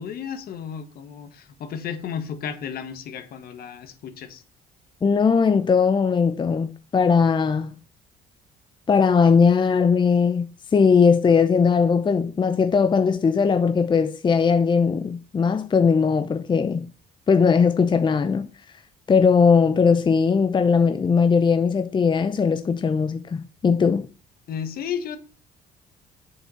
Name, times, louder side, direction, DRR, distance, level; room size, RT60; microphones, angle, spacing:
voice 1, 0.0-4.4 24.5-25.2, left 7 dB, 65° left, 1.6 m, -33 dB
voice 2, 5.0-7.8 8.9-16.9 17.3-18.5 19.1-24.1, left 5 dB, 25° left, 0.7 m, -19 dB
7.8 x 6.7 x 5.6 m
cardioid pair, 110°, 17 cm